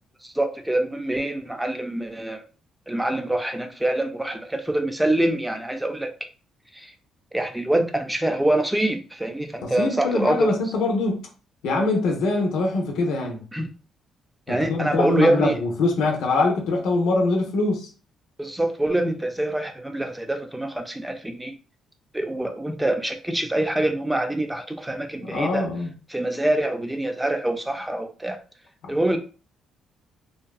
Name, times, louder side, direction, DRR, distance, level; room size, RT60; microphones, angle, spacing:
voice 1, 0.2-2.4 2.9-6.1 6.7-6.9 7.3-10.5 13.5-13.7 14.5-15.6 18.4-21.5 22.1-25.7 26.1-28.4 28.9-29.2, right 1 dB, 10° right, 0.4 m, -25 dB
voice 2, 9.6-11.3 11.6-13.4 14.5-17.9 25.2-25.9, left 3 dB, 90° left, 0.6 m, -23 dB
2.7 x 2.2 x 2.3 m
cardioid pair, 90°, 0 cm